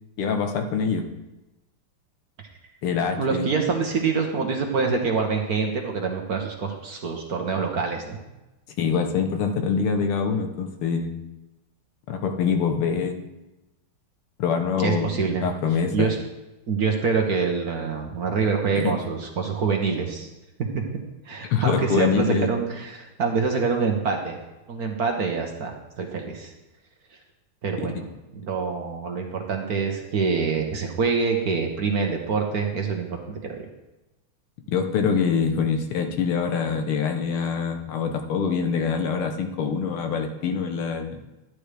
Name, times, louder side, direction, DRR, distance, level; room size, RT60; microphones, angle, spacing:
voice 1, 0.2-1.1 2.8-3.5 8.8-11.1 12.1-13.2 14.4-15.2 15.4-16.1 18.8-18.9 21.5-22.5 27.8-27.9 34.7-41.2, left 6 dB, 85° left, 5 dB, 1.9 m, -24 dB
voice 2, 3.2-8.2 14.8-15.4 15.9-16.2 16.7-20.3 20.7-20.8 21.3-24.4 24.7-26.5 27.6-28.0 28.3-33.6, right 5 dB, 50° right, 2 dB, 1.4 m, -25 dB
11.0 x 10.5 x 3.4 m, 1.0 s
omnidirectional pair, 2.4 m